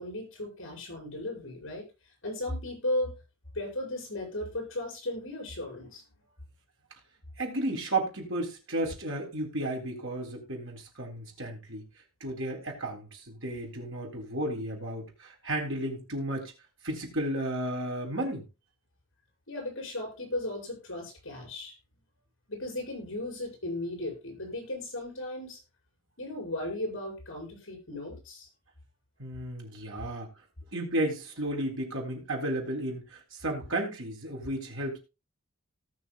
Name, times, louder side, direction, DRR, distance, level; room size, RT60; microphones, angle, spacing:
voice 1, 0.0-3.1 3.5-6.0 19.5-21.8 22.5-25.6 26.2-28.5, left 1 dB, 60° left, 1 dB, 5.9 m, -36 dB
voice 2, 7.4-11.9 12.2-16.5 16.8-18.5 29.2-30.3 30.7-35.0, right 1 dB, 60° right, 1 dB, 3.7 m, -33 dB
18.0 x 6.3 x 2.3 m, 0.28 s
head